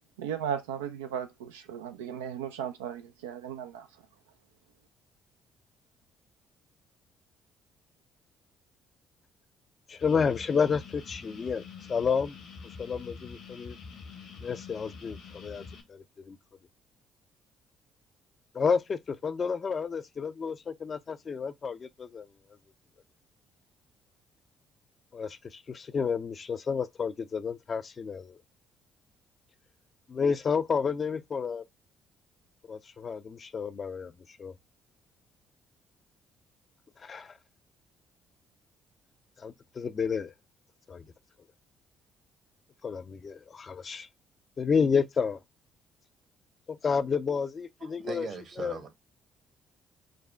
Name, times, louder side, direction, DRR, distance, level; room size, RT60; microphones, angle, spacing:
voice 1, 0.2-3.9, right 8 dB, 90° right, 0.3 m, -36 dB
voice 2, 9.9-11.6 11.9-12.4 12.8-13.8 14.4-15.6 15.9-16.4 18.5-22.3 25.1-28.4 30.1-31.7 32.7-34.1 34.4-34.5 37.0-37.3 39.4-40.3 40.9-41.0 42.8-44.1 44.6-45.4 46.7-48.3 48.6-48.8, left 6 dB, 45° left, 0.4 m, -30 dB
sound 1, 10.0-15.8, left 5 dB, 70° left, 1.1 m, -46 dB
voice 3, 47.8-48.9, right 5 dB, 55° right, 1.1 m, -40 dB
5.1 x 2.0 x 3.3 m
hypercardioid pair, 55°, 0 cm